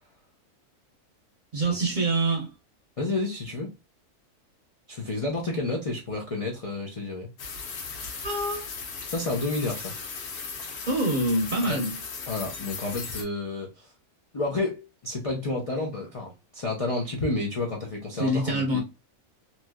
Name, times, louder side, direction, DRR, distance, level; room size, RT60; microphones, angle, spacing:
voice 1, 1.5-2.5 8.2-8.7 10.9-11.9 18.2-18.8, right 1 dB, 45° right, 0.6 m, -25 dB
voice 2, 3.0-3.7 4.9-7.3 9.1-9.9 11.6-11.8 12.3-13.9 14.3-18.8, left 2 dB, 65° left, 0.3 m, -30 dB
sound 1, 7.4-13.2, left 5 dB, 80° left, 1.3 m, -37 dB
3.1 x 2.7 x 2.3 m
omnidirectional pair, 1.5 m